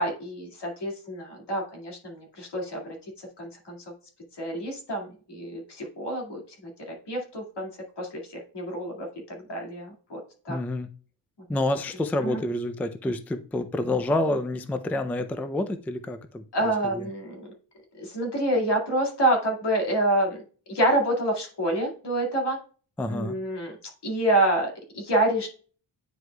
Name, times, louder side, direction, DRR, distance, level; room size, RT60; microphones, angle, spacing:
voice 1, 0.0-2.8 3.4-3.8 4.4-6.4 6.9-7.7 8.0-10.2 10.5-10.6 12.2-12.4 16.5-17.5 18.0-20.4 20.7-22.6 23.1-23.8 24.0-25.5, right 1 dB, 65° left, 2.1 m, -27 dB
voice 2, 10.5-10.9 11.5-16.4 16.9-17.1 23.0-23.4, left 1 dB, 5° left, 0.3 m, -28 dB
9.6 x 4.7 x 2.2 m
wide cardioid pair, 150°, 44 cm